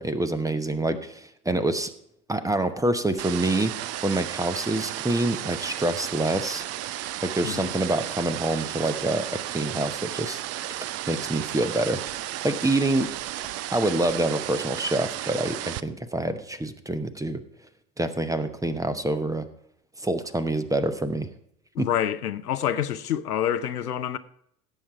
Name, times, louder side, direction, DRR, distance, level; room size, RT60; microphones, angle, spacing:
voice 1, 0.0-1.9 2.3-3.7 4.0-6.6 7.2-10.4 11.1-12.0 12.4-13.1 13.7-17.4 18.0-19.5 20.0-21.3 21.8-21.9, right 2 dB, 5° right, 0.8 m, -26 dB
water flow nature, 3.2-15.8, right 13 dB, 35° right, 0.6 m, -34 dB
voice 2, 21.8-24.2, left 10 dB, 80° left, 0.8 m, -27 dB
16.5 x 7.4 x 4.6 m
figure-of-eight pair, 75°, 45 cm